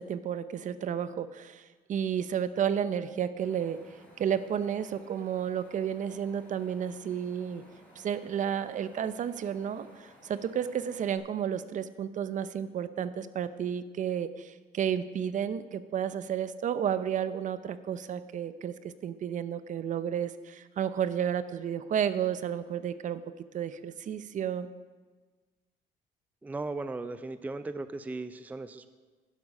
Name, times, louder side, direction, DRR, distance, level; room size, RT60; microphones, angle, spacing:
voice 1, 0.0-3.8 4.2-7.6 8.0-23.2 23.5-24.7, right 8 dB, 50° right, 13 dB, 0.7 m, -32 dB
Wind, 3.4-11.2, left 1 dB, 10° left, 4.8 m, -57 dB
voice 2, 26.4-28.9, right 2 dB, 10° right, 12 dB, 0.5 m, -37 dB
11.5 x 11.0 x 5.4 m, 1.3 s
cardioid pair, 110°, 17 cm